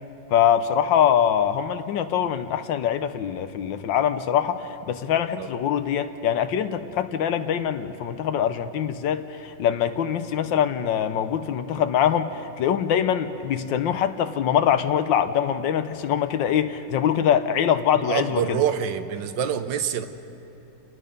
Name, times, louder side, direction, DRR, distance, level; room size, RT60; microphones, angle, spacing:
voice 1, 0.3-18.6, left 9 dB, 80° left, 10 dB, 1.5 m, -23 dB
voice 2, 17.9-20.1, right 8 dB, 75° right, 10 dB, 1.6 m, -26 dB
28.5 x 19.0 x 5.3 m, 2.8 s
omnidirectional pair, 2.0 m